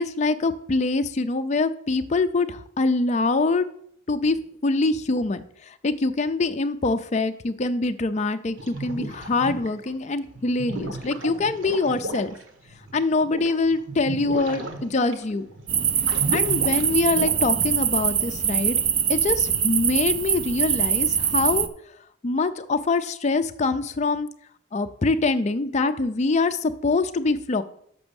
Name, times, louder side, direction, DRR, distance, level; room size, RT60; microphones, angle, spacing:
voice 1, 0.0-3.7 4.1-4.4 4.6-12.3 12.9-15.5 16.3-18.8 19.1-21.7 22.2-24.3 24.7-27.6, left 3 dB, 35° left, 9 dB, 0.4 m, -24 dB
sound 1, 8.6-9.9 10.4-17.3, right 2 dB, 75° right, 1.3 m, -34 dB
sound 2, 15.7-21.7, right 8 dB, 25° right, 0.4 m, -23 dB
6.2 x 6.1 x 7.0 m, 0.68 s
head